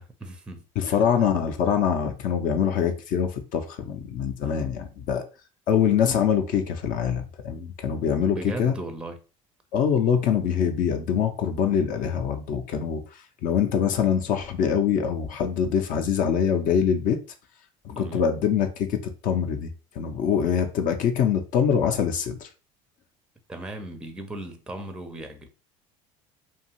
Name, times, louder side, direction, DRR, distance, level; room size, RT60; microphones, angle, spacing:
voice 1, 0.0-1.0 4.4-4.8 8.2-9.2 17.9-18.3 23.5-25.5, right 2 dB, 5° right, 0.4 m, -37 dB
voice 2, 0.8-5.2 5.7-8.7 9.7-17.2 17.8-19.7 20.0-22.5, left 8 dB, 55° left, 0.5 m, -24 dB
2.7 x 2.4 x 2.9 m
supercardioid pair, 100°, 16 cm